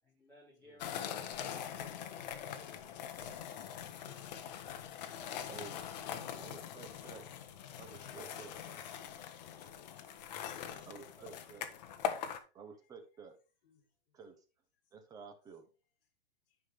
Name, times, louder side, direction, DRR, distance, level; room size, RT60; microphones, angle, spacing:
voice 1, 0.0-2.7 10.4-11.6, equal, 5° left, 4.0 m, -61 dB
sound 1, 0.8-12.4, left 9 dB, 40° left, 1.1 m, -42 dB
voice 2, 5.5-5.9 6.4-7.3 7.7-8.8 10.9-11.7 12.5-13.4 14.1-14.4 14.9-15.7, right 6 dB, 10° right, 0.9 m, -52 dB
voice 3, 9.9-10.8 13.7-13.8, left 5 dB, 60° left, 2.8 m, -67 dB
9.9 x 5.7 x 3.5 m
hypercardioid pair, 165°, 31 cm